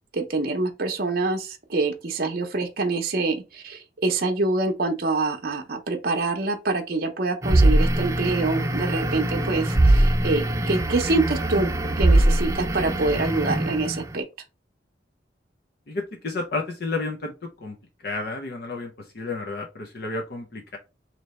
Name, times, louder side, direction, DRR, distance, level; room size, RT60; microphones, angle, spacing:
voice 1, 0.1-11.7 12.0-14.2, right 3 dB, 55° right, 0.7 m, -25 dB
sound 1, 7.4-14.1, right 1 dB, 15° right, 0.4 m, -22 dB
voice 2, 15.9-17.8 18.0-20.8, left 3 dB, 60° left, 0.6 m, -31 dB
3.2 x 2.8 x 4.0 m
head